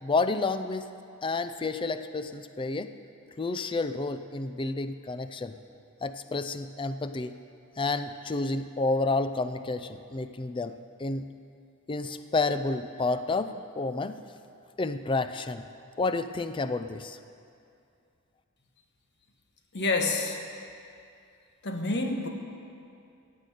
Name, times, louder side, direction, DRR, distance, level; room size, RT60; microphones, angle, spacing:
voice 1, 0.0-0.9 1.2-2.9 3.4-5.6 6.0-7.3 7.8-10.7 11.0-11.3 11.9-14.2 14.8-15.6 16.0-17.2, left 3 dB, 25° left, 10 dB, 0.4 m, -30 dB
voice 2, 19.7-20.4 21.6-22.3, left 3 dB, 55° left, 4 dB, 1.2 m, -28 dB
15.5 x 5.6 x 9.1 m, 2.5 s
head